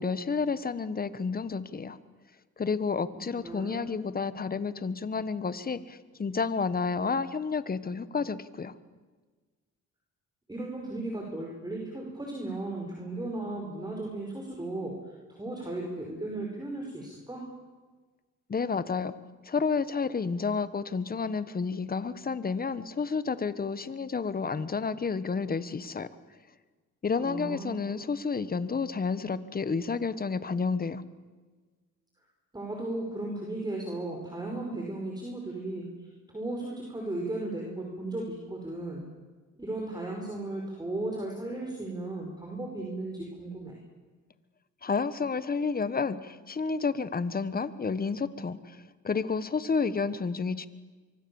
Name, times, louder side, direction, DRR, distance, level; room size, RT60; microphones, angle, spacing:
voice 1, 0.0-2.0 2.6-8.7 18.5-19.1 19.4-26.1 27.0-31.0 44.8-50.7, left 5 dB, 30° left, 14 dB, 1.4 m, -30 dB
voice 2, 3.1-3.9 10.5-17.5 27.2-27.8 32.5-39.0 39.6-43.8, right 2 dB, 15° right, 0 dB, 5.5 m, -36 dB
24.5 x 24.0 x 7.2 m, 1.3 s
cardioid pair, 90°, 30 cm